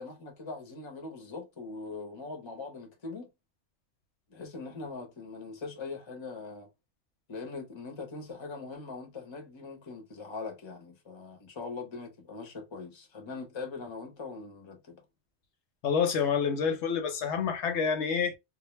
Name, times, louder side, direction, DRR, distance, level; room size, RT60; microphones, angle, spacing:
voice 1, 0.0-3.3 4.3-6.7 7.3-15.0, left 4 dB, 30° left, 0.6 m, -41 dB
voice 2, 15.8-18.4, left 6 dB, 80° left, 0.9 m, -28 dB
2.2 x 2.1 x 3.0 m
omnidirectional pair, 1.2 m